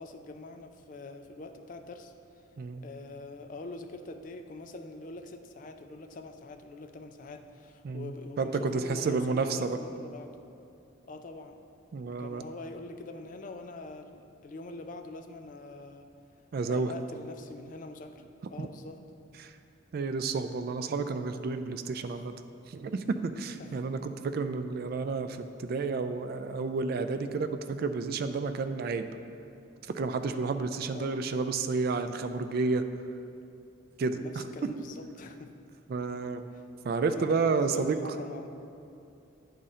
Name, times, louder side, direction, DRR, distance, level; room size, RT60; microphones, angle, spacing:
voice 1, 0.0-2.1 2.8-10.4 11.1-11.7 12.2-16.1 16.7-18.2 18.5-19.0 22.0-22.2 23.6-23.8 30.9-31.3 34.2-35.5 36.5-36.6 37.0-38.5, left 2 dB, 40° left, 7 dB, 0.3 m, -44 dB
voice 2, 7.8-9.8 11.9-12.4 16.5-16.9 18.6-18.7 19.4-19.5 19.9-22.3 22.7-29.1 29.9-32.8 34.0-34.7 35.9-36.4 36.8-38.0, right 4 dB, 50° right, 9 dB, 0.3 m, -31 dB
9.9 x 3.7 x 4.2 m, 2.7 s
head